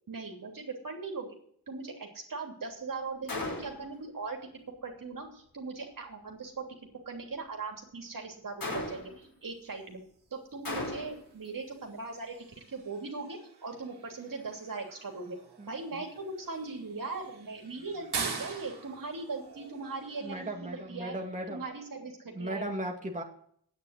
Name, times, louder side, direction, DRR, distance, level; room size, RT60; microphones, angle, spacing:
voice 1, 0.1-1.3 1.7-4.4 4.8-6.6 7.0-10.0 10.3-12.3 12.7-15.4 15.7-21.1 21.5-22.7, right 3 dB, 55° right, 1 dB, 3.2 m, -39 dB
Gunshot gunfire, 3.3-4.0 8.6-9.3 10.6-11.3, left 2 dB, 55° left, 5.3 m, -36 dB
sound 1, 9.7-21.6, right 5 dB, 75° right, 2.4 m, -45 dB
voice 2, 15.6-16.0 20.2-21.6 22.3-23.2, right 1 dB, 20° right, 0 dB, 2.3 m, -37 dB
9.4 x 8.5 x 8.2 m, 0.62 s
cardioid pair, 50°, 39 cm